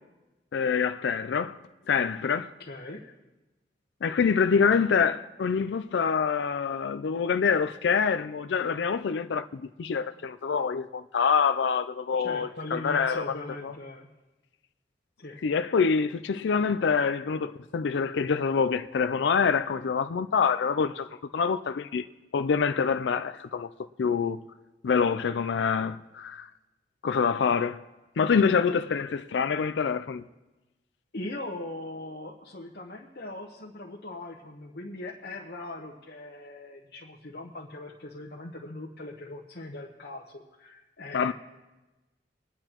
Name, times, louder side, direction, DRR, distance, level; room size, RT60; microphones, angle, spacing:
voice 1, 0.5-1.6 1.9-2.5 4.0-13.3 13.6-13.7 15.4-21.1 21.3-22.1 22.3-23.7 24.0-24.4 24.8-26.5 27.0-27.8 28.2-30.2 41.1-41.3, left 6 dB, 85° left, 0.4 m, -26 dB
voice 2, 2.4-3.0 12.1-14.1 15.2-15.4 28.4-28.8 31.1-41.3, left 2 dB, 60° left, 1.0 m, -40 dB
22.5 x 10.0 x 3.0 m
head